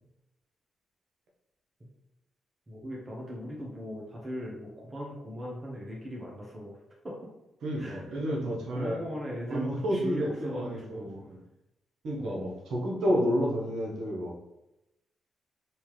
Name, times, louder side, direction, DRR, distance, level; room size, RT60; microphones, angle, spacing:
voice 1, 2.7-6.8 7.0-7.2 7.8-8.1 8.7-11.3 12.2-12.5, equal, 30° right, -4 dB, 1.0 m, -39 dB
voice 2, 7.6-9.0 9.5-11.4 12.0-14.4, equal, 75° right, -2 dB, 1.0 m, -30 dB
3.4 x 2.9 x 3.1 m, 0.91 s
supercardioid pair, 50°, 0 cm